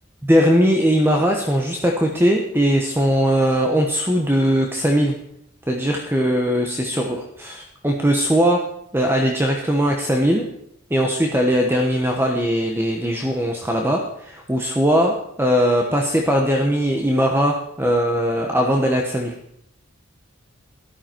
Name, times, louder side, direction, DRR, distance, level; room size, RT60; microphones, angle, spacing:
voice 1, 0.3-5.2 5.7-8.6 8.9-10.4 10.9-19.3, equal, 10° right, 2 dB, 1.1 m, -20 dB
13.5 x 12.0 x 4.5 m, 0.74 s
head